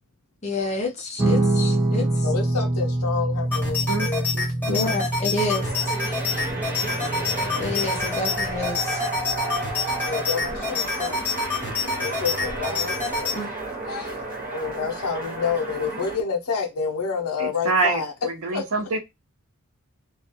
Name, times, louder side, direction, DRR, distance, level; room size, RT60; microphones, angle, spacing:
voice 1, 0.4-2.3 4.7-5.9 7.6-9.0 13.3-13.5, left 2 dB, 30° left, 0.7 m, -29 dB
Guitar, 1.2-10.5, right 1 dB, 10° right, 0.6 m, -27 dB
voice 2, 2.2-4.3 10.0-11.2 12.0-13.0 13.9-14.3 14.5-18.1 18.5-18.6, left 5 dB, 80° left, 0.5 m, -28 dB
sound 1, 3.5-13.4, left 3 dB, 10° left, 1.0 m, -28 dB
voice 3, 3.9-4.8 17.4-19.0, right 3 dB, 70° right, 0.6 m, -26 dB
sound 2, 5.6-16.1, right 2 dB, 40° right, 1.1 m, -32 dB
2.3 x 2.2 x 2.8 m
head